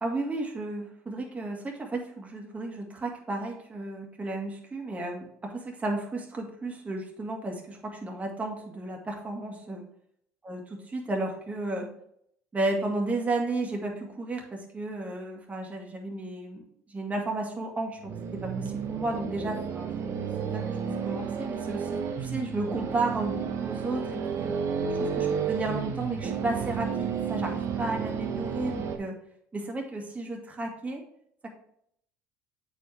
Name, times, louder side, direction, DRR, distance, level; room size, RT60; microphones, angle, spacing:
voice 1, 0.0-9.8 10.4-11.9 12.5-19.9 20.4-24.6 25.0-29.2 29.5-31.0 31.4-31.5, right 2 dB, 25° right, 1 dB, 1.9 m, -33 dB
sound 1, 18.0-29.0, right 6 dB, 55° right, 1.0 m, -32 dB
8.1 x 4.8 x 3.4 m, 0.69 s
supercardioid pair, 80°, 6 cm